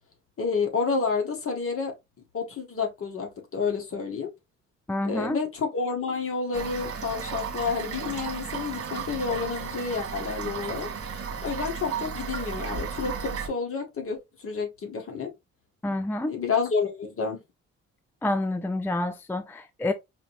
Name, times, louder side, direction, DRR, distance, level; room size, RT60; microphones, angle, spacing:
voice 1, 0.4-1.9 2.3-4.3 5.0-10.9 11.4-15.3 16.3-17.4, left 5 dB, 45° left, 1.6 m, -29 dB
voice 2, 4.9-5.4 15.8-16.4 18.2-19.9, left 2 dB, 5° left, 0.4 m, -28 dB
Toilet flush / Fill (with liquid), 6.5-13.5, right 6 dB, 50° right, 1.4 m, -34 dB
4.9 x 2.9 x 2.5 m
cardioid pair, 90°, 30 cm